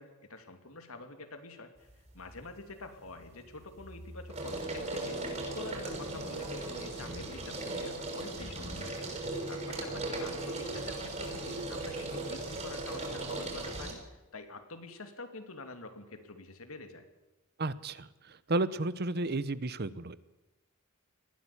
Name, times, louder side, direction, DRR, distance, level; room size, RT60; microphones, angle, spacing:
voice 1, 0.0-5.2 5.5-9.1 9.5-17.0, left 3 dB, 80° left, 7 dB, 2.9 m, -47 dB
sound 1, 1.9-2.4 2.8-13.9, right 2 dB, 35° right, 6.0 m, -38 dB
voice 2, 17.6-18.1 18.5-20.2, right 2 dB, 50° right, 16 dB, 0.9 m, -32 dB
20.5 x 14.5 x 8.6 m, 1.1 s
head